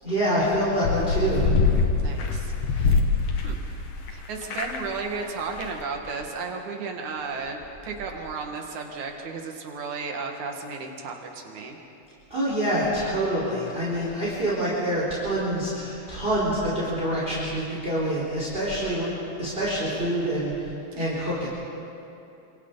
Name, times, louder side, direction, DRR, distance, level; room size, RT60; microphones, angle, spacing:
voice 1, 0.0-1.5 12.3-19.1 19.4-21.5, right 1 dB, 15° right, -8 dB, 4.6 m, -26 dB
sound 1, 0.8-4.1 4.4-5.0 5.2-5.3 5.5-5.7, left 4 dB, 55° left, 2.5 m, -23 dB
voice 2, 2.0-3.0 3.4-3.6 4.1-11.8 20.9-21.1, right 4 dB, 65° right, 2 dB, 3.2 m, -34 dB
28.5 x 27.0 x 4.1 m, 2.8 s
omnidirectional pair, 3.8 m